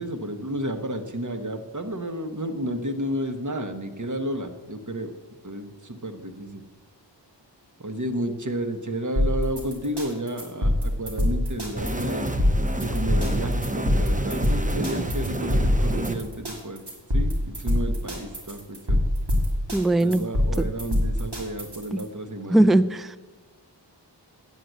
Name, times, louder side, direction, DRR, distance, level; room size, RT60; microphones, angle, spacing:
voice 1, 0.0-5.1 5.4-6.6 7.8-12.3 12.8-16.8 17.1-19.0 20.0-22.7, right 1 dB, 40° right, 7 dB, 1.2 m, -31 dB
sound 1, 9.2-22.0, left 1 dB, 65° right, 2.9 m, -25 dB
sound 2, 11.8-16.2, right 1 dB, 20° right, 0.9 m, -28 dB
voice 2, 19.7-20.2 21.9-22.0 22.5-23.1, right 1 dB, ahead, 12 dB, 0.3 m, -19 dB
9.2 x 7.7 x 8.0 m, 1.2 s
wide cardioid pair, 40°, 44 cm